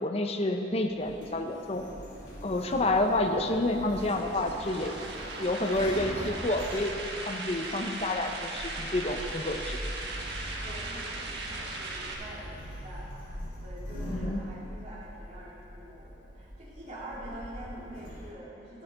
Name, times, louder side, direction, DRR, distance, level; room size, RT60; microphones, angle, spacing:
voice 1, 0.0-1.8 2.4-5.0 5.4-6.9 7.3-9.8 14.1-14.4, left 2 dB, 35° left, 5 dB, 0.7 m, -29 dB
Sliding door, 0.9-18.3, equal, 75° left, 2.8 m, -42 dB
sound 1, 4.0-12.1, right 2 dB, 75° right, 1.5 m, -38 dB
voice 2, 10.6-13.1 13.6-18.8, right 1 dB, 40° right, -7 dB, 2.8 m, -45 dB
13.0 x 11.0 x 3.9 m, 2.7 s
head